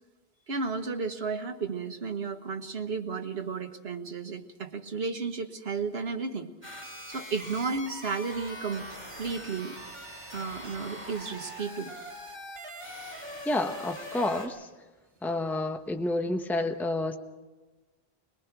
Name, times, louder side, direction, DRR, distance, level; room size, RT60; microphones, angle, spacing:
voice 1, 0.5-6.5 7.1-8.9 9.2-9.8 10.3-11.9, right 4 dB, 75° right, 5 dB, 1.6 m, -33 dB
sound 1, 6.6-14.5, equal, 30° right, 4.5 m, -42 dB
voice 2, 13.5-14.7 15.2-17.2, left 2 dB, ahead, 6 dB, 0.9 m, -29 dB
22.0 x 21.0 x 6.0 m, 1.2 s
omnidirectional pair, 1.0 m